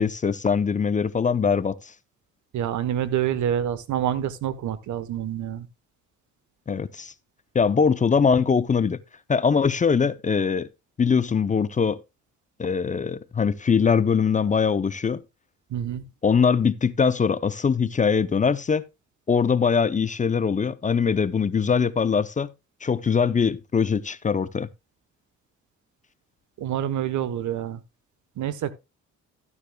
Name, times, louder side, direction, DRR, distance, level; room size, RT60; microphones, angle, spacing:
voice 1, 0.0-1.9 6.7-7.1 7.5-9.0 9.3-10.7 11.0-12.0 12.6-15.2 16.2-18.8 19.3-22.5 22.8-24.7, left 6 dB, 25° left, 0.5 m, -22 dB
voice 2, 2.5-5.7 15.7-16.0 26.6-27.8 28.4-28.7, right 10 dB, 75° right, 1.0 m, -27 dB
13.5 x 9.7 x 2.2 m
cardioid pair, 90°, 30 cm